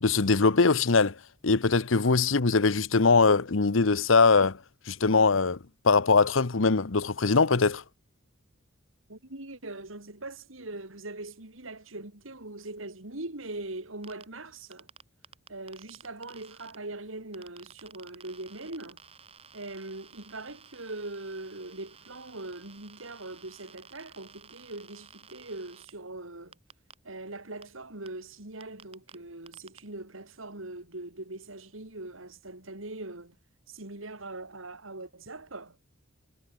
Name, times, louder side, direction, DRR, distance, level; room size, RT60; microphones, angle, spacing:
voice 1, 0.0-1.1 1.4-4.6 4.9-5.6 5.8-7.8, left 4 dB, 70° left, 1.0 m, -22 dB
voice 2, 9.1-14.9 15.5-19.0 19.5-26.6 27.0-33.4 33.7-35.8, right 2 dB, 75° right, 3.6 m, -41 dB
sound 1, 14.0-14.3 14.7-16.8 17.3-25.9 26.5-26.9 27.6-27.7 28.1-28.2 28.6-29.2 29.5-29.8, right 6 dB, 30° right, 4.4 m, -53 dB
head